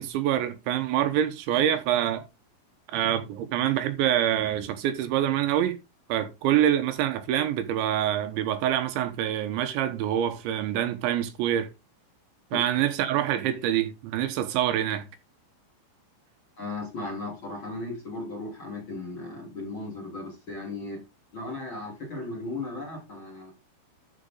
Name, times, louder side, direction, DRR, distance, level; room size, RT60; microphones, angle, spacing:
voice 1, 0.0-2.2 2.9-5.8 6.1-11.7 12.5-15.0, right 11 dB, 80° right, 3.3 m, -26 dB
voice 2, 16.6-21.0 21.3-23.5, left 2 dB, 30° left, 4.1 m, -36 dB
12.5 x 6.1 x 3.8 m
omnidirectional pair, 5.4 m